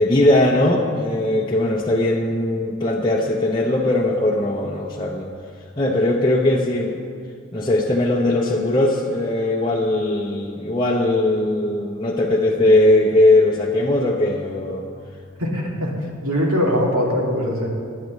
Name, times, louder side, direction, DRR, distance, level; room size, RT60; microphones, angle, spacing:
voice 1, 0.0-5.3 5.8-7.0 7.5-14.9, left 1 dB, 20° left, -3 dB, 0.7 m, -19 dB
voice 2, 15.4-15.9 16.2-17.7, equal, 85° right, -2 dB, 2.4 m, -21 dB
18.5 x 10.5 x 3.1 m, 2.2 s
head